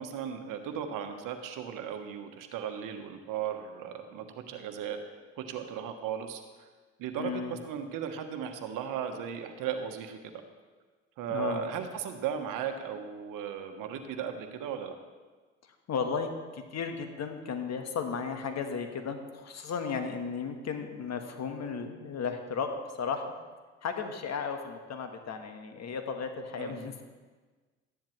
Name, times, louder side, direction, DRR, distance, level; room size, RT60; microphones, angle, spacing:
voice 1, 0.0-5.0 5.4-6.4 7.0-10.4 11.2-15.0 26.6-26.8, right 8 dB, 65° right, 6 dB, 1.2 m, -36 dB
voice 2, 7.2-7.6 11.3-11.6 15.9-23.2 23.8-27.0, left 5 dB, 50° left, 6 dB, 1.4 m, -34 dB
13.5 x 10.0 x 3.2 m, 1.4 s
hypercardioid pair, 60°, 35 cm